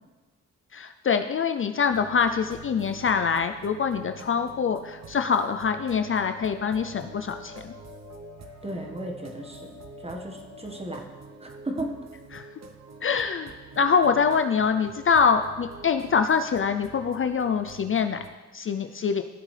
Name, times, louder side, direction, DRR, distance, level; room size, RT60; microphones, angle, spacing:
voice 1, 0.7-7.7 12.3-12.5 13.0-18.2 18.5-19.2, left 6 dB, 40° left, 7 dB, 0.5 m, -24 dB
sound 1, 1.9-18.3, right 4 dB, 60° right, 0.9 m, -46 dB
sound 2, 5.6-11.0, left 10 dB, 65° left, 1.9 m, -49 dB
voice 2, 8.6-9.7 10.0-11.0 11.4-11.9, right 1 dB, 20° right, 2 dB, 1.4 m, -35 dB
16.0 x 7.2 x 3.3 m, 1.2 s
cardioid pair, 85°, 31 cm